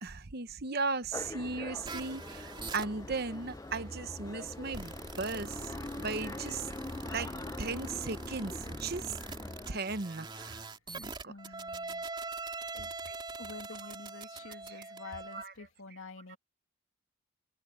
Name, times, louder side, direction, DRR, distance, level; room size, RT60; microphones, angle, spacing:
voice 1, 0.0-6.7 7.1-9.2 9.7-11.3 11.7-11.8 13.1-13.2 14.7-14.9 15.3-15.5 16.3-16.4, right 4 dB, 50° right, 1.0 m, -37 dB
sound 1, 1.1-9.8, left 2 dB, 15° left, 0.4 m, -44 dB
sound 2, 1.8-15.4, right 3 dB, 20° right, 3.2 m, -43 dB
voice 2, 11.3-12.1 12.7-12.9 13.4-16.4, left 3 dB, 75° left, 2.4 m, -48 dB
head